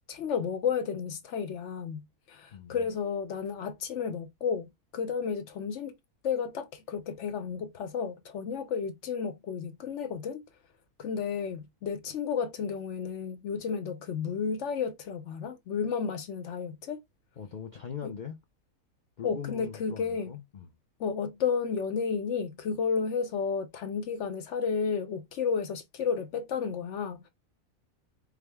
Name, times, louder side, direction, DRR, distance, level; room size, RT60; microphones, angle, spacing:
voice 1, 0.1-6.0 6.2-10.4 11.0-17.0 18.0-18.1 19.2-20.3 21.0-27.3, left 6 dB, 65° left, 0.8 m, -32 dB
voice 2, 2.5-2.9 17.4-18.4 19.2-20.7, left 7 dB, 80° left, 0.4 m, -41 dB
4.8 x 2.0 x 3.4 m
omnidirectional pair, 1.5 m